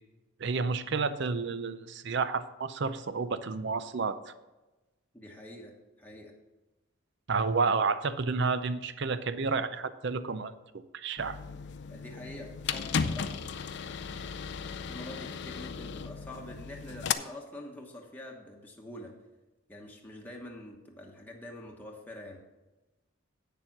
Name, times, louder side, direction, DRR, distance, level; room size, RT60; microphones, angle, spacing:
voice 1, 0.4-4.3 7.3-11.4, right 4 dB, 55° right, 13 dB, 0.5 m, -30 dB
voice 2, 5.1-6.3 11.9-13.3 14.8-19.1 19.7-22.4, left 1 dB, 10° left, -1 dB, 1.1 m, -46 dB
sound 1, 11.2-17.1, left 6 dB, 55° left, 0.4 m, -35 dB
8.8 x 6.8 x 5.9 m, 1.1 s
head